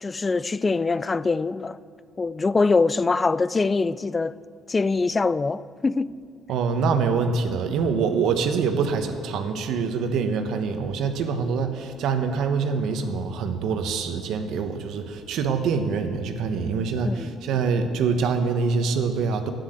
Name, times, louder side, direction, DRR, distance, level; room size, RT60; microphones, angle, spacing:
voice 1, 0.0-1.8 2.2-4.3 4.7-6.1 17.0-17.3, left 3 dB, 25° left, 0.4 m, -23 dB
voice 2, 6.5-19.5, right 5 dB, 70° right, 1.2 m, -25 dB
10.5 x 9.8 x 7.9 m
cardioid pair, 90°, 0 cm